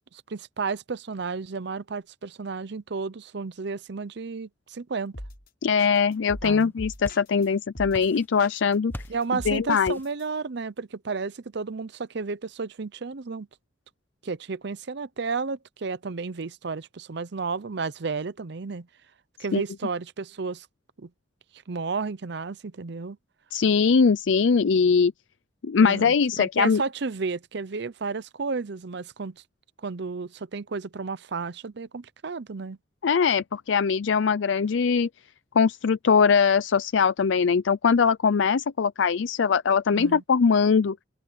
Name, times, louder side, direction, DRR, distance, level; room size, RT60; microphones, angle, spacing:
voice 1, 0.3-5.1 6.4-6.7 9.1-13.5 14.2-18.9 19.4-20.7 21.0-21.1 21.7-23.2 25.8-29.4 29.8-32.8 39.9-40.2, right 4 dB, 65° right, 0.7 m, -32 dB
sound 1, 5.1-5.5 5.8-7.5 7.8-8.1 8.4-10.2, left 1 dB, 60° left, 6.6 m, -40 dB
voice 2, 5.6-8.9 9.5-10.0 19.5-19.6 23.5-25.1 25.6-26.8 33.0-35.1 35.6-41.0, left 5 dB, 85° left, 0.5 m, -21 dB
sound 2, 6.7-7.6 7.9-8.5 8.9-9.3 9.8-10.2, left 1 dB, 10° left, 0.7 m, -42 dB
open air
head